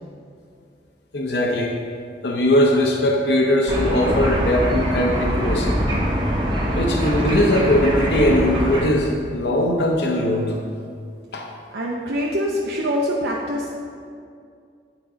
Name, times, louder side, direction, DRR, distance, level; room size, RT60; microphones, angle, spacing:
voice 1, 1.1-1.8 2.2-5.8 6.7-10.6 11.3-11.5, left 1 dB, 70° left, 1 dB, 0.7 m, -20 dB
sound 1, 3.7-8.8, equal, 25° right, 0.9 m, -23 dB
voice 2, 11.7-13.7, equal, 70° right, -3 dB, 0.6 m, -24 dB
9.0 x 3.9 x 4.9 m, 2.3 s
head